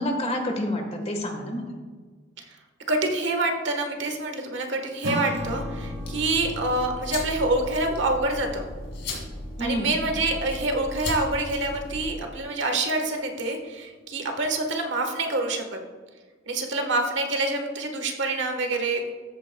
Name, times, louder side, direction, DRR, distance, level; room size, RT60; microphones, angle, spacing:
voice 1, 0.0-1.8 9.6-10.0, left 1 dB, 35° left, 3 dB, 1.4 m, -28 dB
voice 2, 2.9-8.6 9.6-15.8 16.5-19.1, right 2 dB, 70° right, 4 dB, 1.3 m, -26 dB
Acoustic guitar / Strum, 5.0-9.8, equal, 85° right, 1.6 m, -36 dB
sound 1, 5.3-12.2, left 1 dB, 65° left, 2.8 m, -36 dB
14.0 x 8.5 x 2.2 m, 1.5 s
head